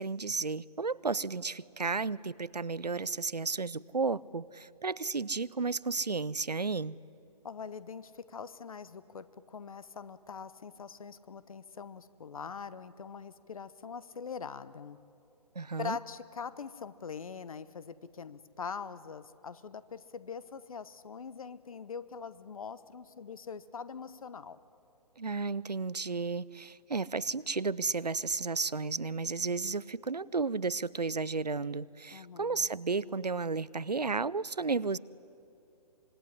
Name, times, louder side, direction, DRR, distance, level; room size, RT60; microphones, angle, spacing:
voice 1, 0.0-7.0 15.6-16.0 25.2-35.0, right 4 dB, 85° right, 22 dB, 0.6 m, -33 dB
voice 2, 7.4-15.0 15.8-24.6 32.1-32.7, left 6 dB, 60° left, 16 dB, 1.1 m, -43 dB
25.5 x 21.5 x 10.0 m, 2.7 s
figure-of-eight pair, 135°, 20 cm